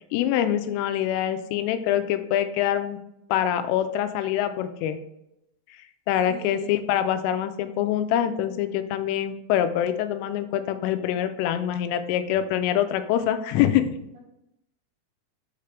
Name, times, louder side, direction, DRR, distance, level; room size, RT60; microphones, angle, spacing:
voice 1, 0.1-3.0 3.3-5.0 6.1-14.0, left 10 dB, 85° left, 10 dB, 3.1 m, -25 dB
voice 2, 6.2-6.9 14.1-14.2, right 3 dB, 80° right, -1 dB, 2.1 m, -40 dB
6.8 x 5.8 x 3.3 m, 0.85 s
omnidirectional pair, 5.6 m